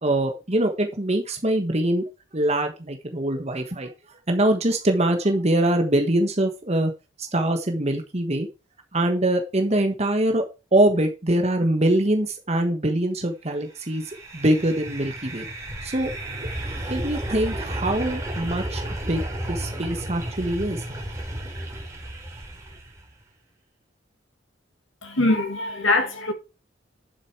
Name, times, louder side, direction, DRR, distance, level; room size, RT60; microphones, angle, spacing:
voice 1, 0.0-6.9 7.2-8.5 8.9-10.5 10.7-15.5 15.8-16.1 16.9-18.8 19.1-19.2 19.5-20.8, right 1 dB, 35° right, 1.3 m, -23 dB
sound 1, 13.9-23.0, right 1 dB, 15° right, 3.7 m, -33 dB
voice 2, 25.0-26.3, left 2 dB, 85° left, 2.5 m, -22 dB
11.0 x 7.6 x 4.7 m
head